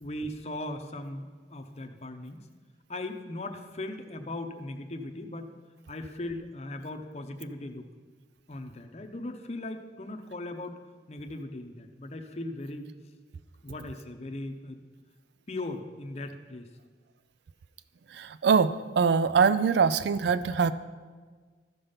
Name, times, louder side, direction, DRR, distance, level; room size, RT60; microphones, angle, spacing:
voice 1, 0.0-2.4 2.9-5.5 5.9-7.9 8.5-10.8 11.1-12.9 13.6-14.8 15.5-16.7, left 1 dB, 35° left, 5 dB, 0.7 m, -38 dB
voice 2, 18.2-20.7, right 5 dB, 70° right, 14 dB, 0.4 m, -23 dB
14.0 x 5.2 x 5.6 m, 1.5 s
head